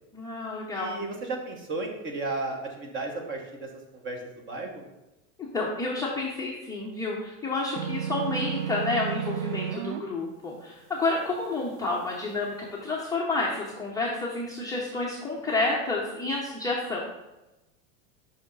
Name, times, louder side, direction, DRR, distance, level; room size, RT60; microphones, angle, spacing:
voice 1, 0.1-1.0 5.4-17.0, left 3 dB, 10° left, -4 dB, 0.5 m, -30 dB
voice 2, 0.7-4.8, right 2 dB, 30° right, 2 dB, 1.1 m, -34 dB
sound 1, 7.8-10.0, right 9 dB, 80° right, 0.5 m, -32 dB
5.5 x 3.4 x 5.2 m, 0.99 s
supercardioid pair, 150°, 39 cm